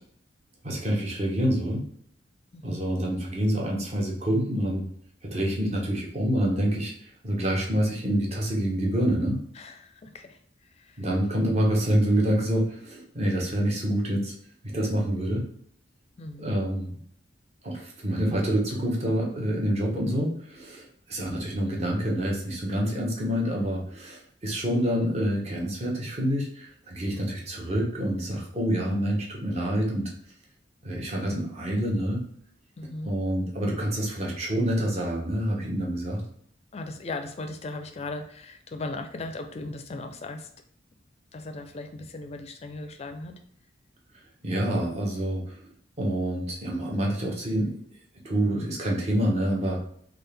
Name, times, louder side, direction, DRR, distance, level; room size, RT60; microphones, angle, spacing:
voice 1, 0.6-1.8 2.6-4.8 5.2-9.4 11.0-14.3 14.6-15.5 16.4-17.0 17.6-30.1 30.8-32.2 33.0-36.2 44.4-45.6 46.0-47.8 48.1-49.8, equal, 35° right, -1 dB, 0.8 m, -27 dB
voice 2, 9.6-10.4 10.8-11.0 16.2-16.4 32.8-33.1 36.7-40.5 41.3-43.4, left 2 dB, 35° left, 6 dB, 0.4 m, -37 dB
3.6 x 2.4 x 3.3 m, 0.64 s
head